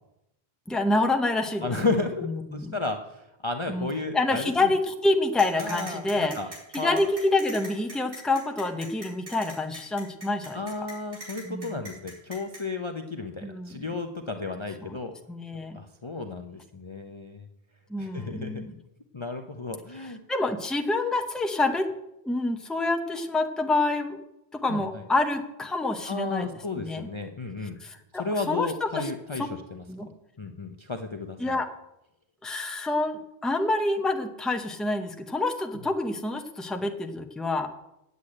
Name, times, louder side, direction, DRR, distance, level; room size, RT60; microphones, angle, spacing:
voice 1, 0.7-1.7 2.2-2.8 3.7-6.4 6.7-10.6 11.4-11.8 13.4-13.8 14.8-15.0 15.3-15.8 17.9-18.8 20.0-21.9 22.2-24.2 24.5-26.5 26.7-27.1 27.8-29.1 29.4-29.5 29.9-30.1 31.4-31.7 32.4-37.7, left 2 dB, ahead, 5 dB, 0.8 m, -27 dB
voice 2, 1.6-3.0 3.4-4.7 5.6-6.5 6.8-7.0 10.5-15.2 15.7-17.4 18.0-18.6 19.1-20.2 24.7-24.8 26.1-27.8 28.2-29.8 30.4-31.6, left 3 dB, 30° left, 4 dB, 0.7 m, -33 dB
sound 1, 5.4-12.6, right 1 dB, 85° right, 4.3 m, -41 dB
8.2 x 8.2 x 8.6 m, 0.88 s
omnidirectional pair, 1.1 m